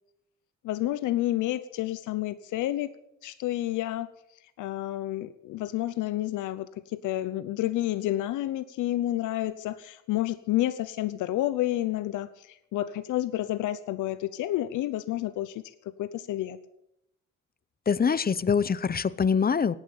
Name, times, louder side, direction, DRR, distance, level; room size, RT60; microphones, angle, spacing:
voice 1, 0.6-2.9 3.2-4.1 4.6-15.6 16.0-16.6, left 14 dB, 90° left, 13 dB, 0.8 m, -30 dB
voice 2, 17.9-19.7, left 6 dB, 30° left, 18 dB, 0.8 m, -24 dB
17.5 x 9.4 x 8.8 m, 0.81 s
cardioid pair, 90°, 30 cm